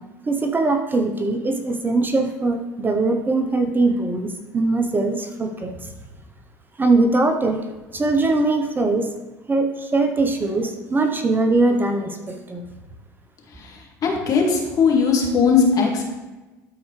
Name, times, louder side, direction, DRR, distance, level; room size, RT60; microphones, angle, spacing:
voice 1, 0.3-5.9 6.8-7.6 7.9-9.1 9.5-12.6, right 2 dB, 25° right, 5 dB, 0.9 m, -21 dB
voice 2, 14.0-16.0, left 5 dB, 45° left, 0 dB, 2.1 m, -18 dB
13.0 x 4.6 x 3.3 m, 1.1 s
hypercardioid pair, 75°, 8 cm